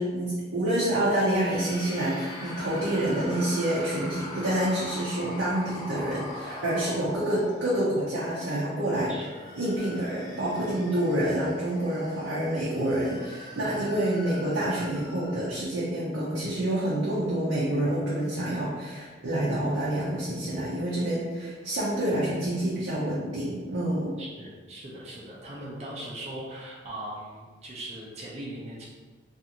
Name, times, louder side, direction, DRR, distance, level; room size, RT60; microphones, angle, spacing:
voice 1, 0.0-9.1 9.6-24.1, right 1 dB, 85° right, -7 dB, 0.5 m, -27 dB
sound 1, 1.3-8.4 9.1-15.6, left 1 dB, 20° left, 0.4 m, -41 dB
voice 2, 24.2-28.8, right 1 dB, 35° right, -6 dB, 0.4 m, -40 dB
2.4 x 2.4 x 2.8 m, 1.4 s
head